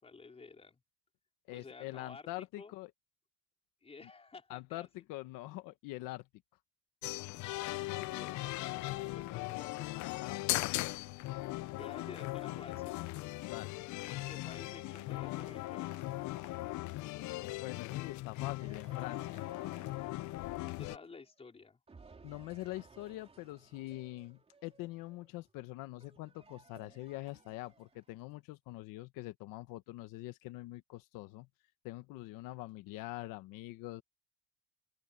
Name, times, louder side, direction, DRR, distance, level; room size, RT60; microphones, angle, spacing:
voice 1, 0.0-0.8 1.5-2.3 2.6-2.7 3.8-4.9 7.4-9.9 11.8-13.0 14.0-16.0 20.6-21.8, left 4 dB, 20° left, 4.3 m, -52 dB
voice 2, 1.5-2.9 4.0-4.1 4.5-6.3 9.9-11.0 13.5-13.9 17.6-19.5 22.2-31.5 31.8-34.0, left 18 dB, 85° left, 1.2 m, -44 dB
sound 1, 7.0-21.0, left 19 dB, 65° left, 0.5 m, -39 dB
sound 2, 9.9-17.3 18.6-21.5 21.9-28.3, right 4 dB, 20° right, 3.2 m, -62 dB
open air
cardioid pair, 150°, 32 cm